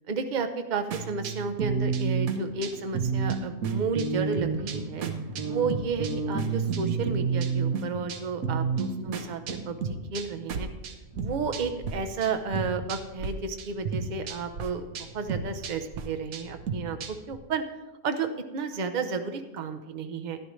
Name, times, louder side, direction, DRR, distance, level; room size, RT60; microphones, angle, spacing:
voice 1, 0.1-5.1 5.5-9.8 10.1-10.7 11.2-14.8 15.1-17.6 18.0-18.3 18.5-20.4, right 4 dB, 40° right, 7 dB, 0.7 m, -32 dB
sound 1, 0.9-11.9 12.2-13.3 13.6-17.4, right 5 dB, 75° right, 1.3 m, -31 dB
13.5 x 10.5 x 3.2 m, 1.0 s
omnidirectional pair, 1.5 m